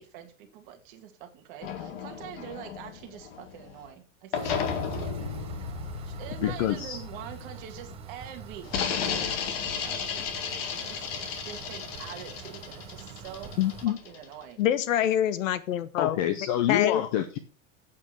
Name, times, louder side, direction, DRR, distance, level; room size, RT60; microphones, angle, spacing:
voice 1, 0.0-4.6 6.1-8.8 9.1-10.3 10.8-13.5 13.9-14.6, right 9 dB, 40° right, 2.1 m, -45 dB
sound 1, 1.6-3.9 4.3-8.0 8.6-14.4, left 6 dB, 50° left, 2.0 m, -34 dB
sound 2, 4.3-13.9, right 8 dB, 15° right, 0.8 m, -45 dB
voice 2, 6.4-7.0 16.0-17.4, left 11 dB, 30° left, 0.5 m, -27 dB
voice 3, 13.6-14.0 14.6-16.2 16.7-17.0, left 11 dB, 75° left, 1.2 m, -25 dB
8.3 x 7.1 x 6.2 m
supercardioid pair, 165°, 39 cm